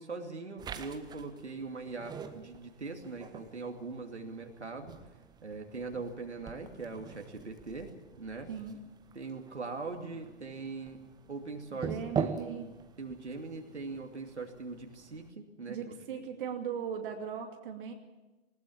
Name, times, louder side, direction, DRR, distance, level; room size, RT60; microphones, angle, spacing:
voice 1, 0.0-4.9 5.4-7.9 8.2-8.5 9.1-11.0 11.3-15.9, right 3 dB, 75° right, 3 dB, 2.7 m, -41 dB
sound 1, 0.6-15.3, right 7 dB, 10° right, 1.1 m, -43 dB
voice 2, 8.5-8.8 11.7-12.7 15.7-17.9, right 7 dB, 50° right, 4 dB, 2.5 m, -38 dB
20.0 x 19.0 x 7.4 m, 1.1 s
figure-of-eight pair, 110°, 34 cm